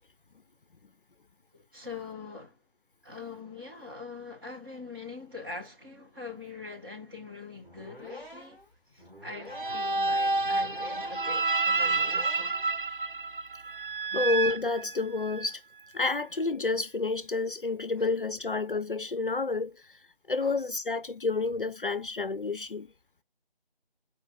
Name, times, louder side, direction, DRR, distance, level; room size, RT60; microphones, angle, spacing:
voice 1, 1.5-2.6 3.0-8.6 8.9-12.6 14.1-14.3 18.0-18.1 20.4-20.6, left 3 dB, 20° right, 1.7 m, -43 dB
sound 1, 7.6-12.8, equal, ahead, 4.3 m, -48 dB
sound 2, 9.5-15.5, right 3 dB, 60° right, 0.7 m, -29 dB
voice 2, 14.1-15.6 15.9-19.7 20.3-22.9, left 3 dB, 60° left, 0.5 m, -29 dB
8.0 x 4.8 x 2.5 m
figure-of-eight pair, 165°, 30 cm